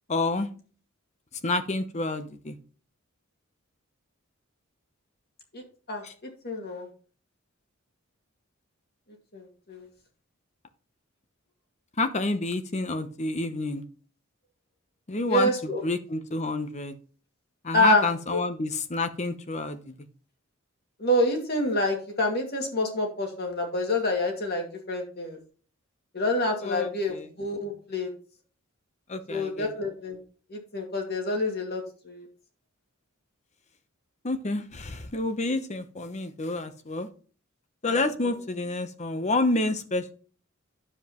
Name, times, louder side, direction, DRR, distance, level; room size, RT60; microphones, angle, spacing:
voice 1, 0.1-0.5 1.4-2.6 6.0-6.1 12.0-13.8 15.1-15.5 15.8-17.0 17.6-19.9 26.6-27.3 29.1-29.7 34.2-37.1 37.8-40.1, left 2 dB, 35° left, 10 dB, 0.8 m, -29 dB
voice 2, 6.4-6.9 9.3-9.9 15.3-15.8 17.7-18.1 18.3-18.4 21.0-25.4 26.1-28.1 29.3-30.2 30.5-32.3 37.9-38.0, left 1 dB, 50° left, 2 dB, 2.2 m, -27 dB
9.8 x 7.5 x 3.0 m, 0.40 s
head